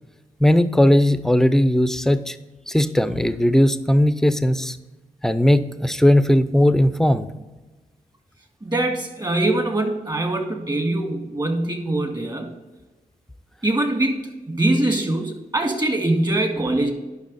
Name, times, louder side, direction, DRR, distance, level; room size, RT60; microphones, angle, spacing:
voice 1, 0.4-2.4 2.7-4.8 5.2-7.3, left 1 dB, 5° left, 12 dB, 0.6 m, -18 dB
voice 2, 8.6-12.6 13.6-16.9, right 1 dB, 30° right, 3 dB, 2.0 m, -23 dB
10.5 x 5.8 x 4.1 m, 1.2 s
cardioid pair, 70°, 15 cm